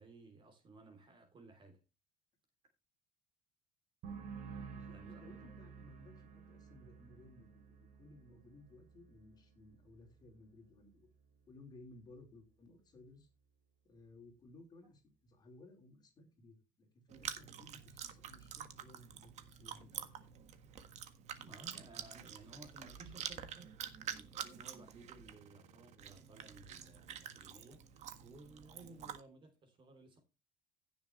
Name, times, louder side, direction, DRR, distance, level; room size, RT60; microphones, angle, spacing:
voice 1, 0.0-1.8 4.9-5.6 21.4-23.7 24.0-30.2, right 2 dB, 35° right, 3.3 m, -58 dB
sound 1, 4.0-11.5 11.8-12.3, right 6 dB, 65° right, 3.6 m, -53 dB
voice 2, 4.7-11.1 11.5-13.3 13.8-20.1, left 2 dB, 25° left, 4.4 m, -59 dB
Chewing mastication, 17.1-29.2, right 9 dB, 50° right, 1.6 m, -48 dB
16.0 x 7.0 x 3.2 m
cardioid pair, 150°, 15 cm